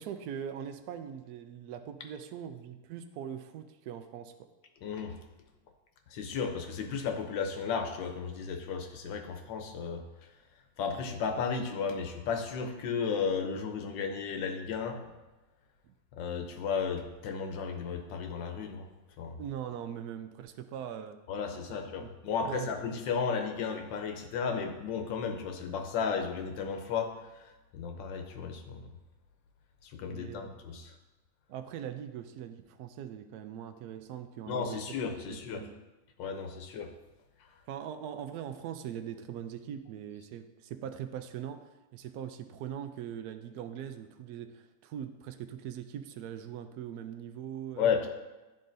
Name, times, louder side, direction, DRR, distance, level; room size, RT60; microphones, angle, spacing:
voice 1, 0.0-4.5 19.4-21.2 21.7-22.1 22.5-22.6 30.1-30.5 31.5-34.8 35.3-35.7 37.7-47.9, right 9 dB, 75° right, 8 dB, 0.9 m, -41 dB
voice 2, 4.8-5.2 6.1-10.4 10.8-15.1 16.1-18.9 19.2-19.4 21.3-28.9 29.8-30.9 34.5-35.7 36.2-36.9 37.4-37.6 47.8-48.1, left 6 dB, 75° left, 5 dB, 1.4 m, -34 dB
11.5 x 3.9 x 2.6 m, 1.1 s
omnidirectional pair, 2.1 m